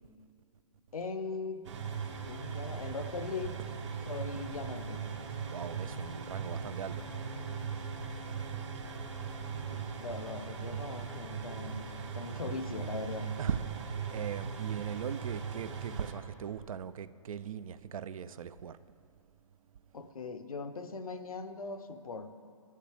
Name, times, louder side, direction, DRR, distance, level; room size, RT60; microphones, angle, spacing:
voice 1, 0.9-1.7 2.3-3.6 4.1-5.0 9.7-13.3 19.9-22.3, left 4 dB, 85° left, 8 dB, 0.6 m, -40 dB
sound 1, 1.6-16.1, right 6 dB, 55° right, 1.0 m, -39 dB
voice 2, 5.5-7.0 13.4-18.8, right 8 dB, 75° right, 15 dB, 0.4 m, -39 dB
11.5 x 6.6 x 3.4 m, 2.4 s
hypercardioid pair, 135°, 18 cm